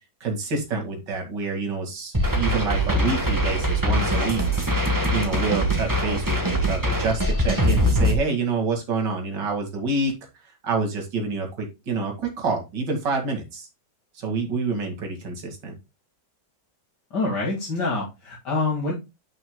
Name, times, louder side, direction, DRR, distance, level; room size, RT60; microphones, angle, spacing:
voice 1, 0.2-4.4 5.1-10.1 10.6-13.7 14.1-15.7, right 4 dB, 70° right, 2 dB, 2.8 m, -27 dB
sound 1, 2.1-8.2, equal, 10° right, 1.2 m, -22 dB
voice 2, 17.1-18.9, left 3 dB, 65° left, -4 dB, 2.8 m, -26 dB
11.0 x 5.9 x 2.2 m, 0.24 s
omnidirectional pair, 2.0 m